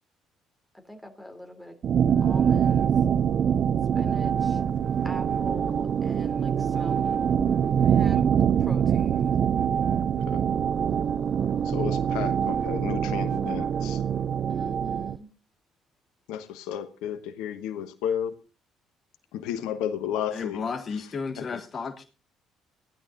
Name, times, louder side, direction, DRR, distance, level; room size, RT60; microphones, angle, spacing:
voice 1, 0.7-1.8 2.2-3.0 3.9-4.6 5.0-7.3 7.8-8.3 8.6-9.5 14.5-15.3, left 1 dB, 5° left, 3.4 m, -43 dB
sound 1, 1.8-15.2, right 8 dB, 50° right, 0.6 m, -24 dB
voice 2, 11.6-14.0 16.3-18.3 19.3-20.6 21.4-21.6, left 9 dB, 70° left, 1.2 m, -32 dB
voice 3, 20.3-22.0, left 5 dB, 40° left, 1.3 m, -33 dB
15.5 x 11.0 x 4.0 m
hypercardioid pair, 50°, 0 cm